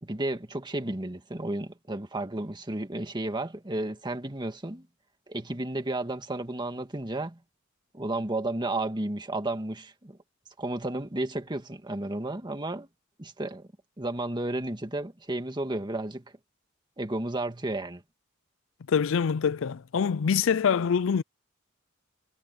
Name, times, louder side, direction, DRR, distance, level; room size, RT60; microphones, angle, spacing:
voice 1, 0.0-4.9 5.3-7.4 7.9-10.2 10.6-12.9 13.2-13.7 14.0-16.2 17.0-18.0, right 2 dB, 20° right, 1.9 m, -32 dB
voice 2, 18.9-21.2, left 6 dB, 65° left, 0.4 m, -25 dB
head